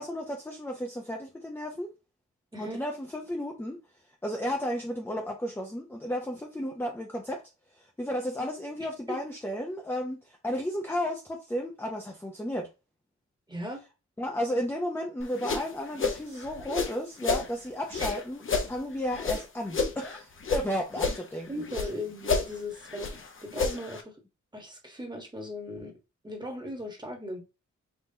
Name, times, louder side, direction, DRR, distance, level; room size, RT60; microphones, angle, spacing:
voice 1, 0.0-1.9 2.6-3.8 4.2-7.4 7.8-12.7 14.2-21.5, equal, 10° left, 0.6 m, -33 dB
voice 2, 2.5-2.8 9.1-9.2 13.5-13.8 18.0-18.2 21.1-21.2 21.5-24.1 24.5-25.9 26.2-27.4, left 1 dB, 15° right, 1.2 m, -38 dB
sound 1, 15.2-17.5 17.9-20.7 20.9-21.9 22.2-24.0, left 4 dB, 45° left, 0.8 m, -31 dB
5.5 x 2.9 x 2.7 m
wide cardioid pair, 150°, 29 cm